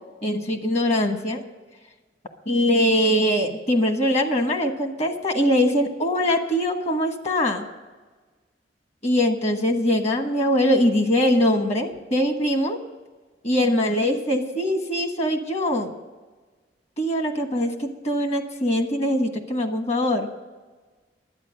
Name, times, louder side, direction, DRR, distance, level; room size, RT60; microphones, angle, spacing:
voice 1, 0.2-1.4 2.5-7.7 9.0-12.8 13.4-15.9 17.0-20.3, equal, 40° left, 6 dB, 1.2 m, -22 dB
11.5 x 9.1 x 6.3 m, 1.3 s
head